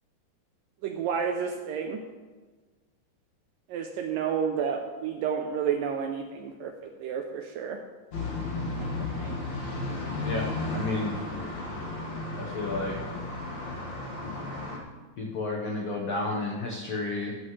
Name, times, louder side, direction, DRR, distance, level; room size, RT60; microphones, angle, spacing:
voice 1, 0.8-2.0 3.7-7.8 8.8-9.4, right 7 dB, 80° right, 4 dB, 2.0 m, -31 dB
sound 1, 8.1-14.8, left 2 dB, 50° left, 2.5 m, -34 dB
voice 2, 10.2-11.2 12.4-13.0 15.2-17.3, left 2 dB, 85° left, -1 dB, 1.3 m, -31 dB
13.0 x 12.0 x 3.2 m, 1.3 s
omnidirectional pair, 4.6 m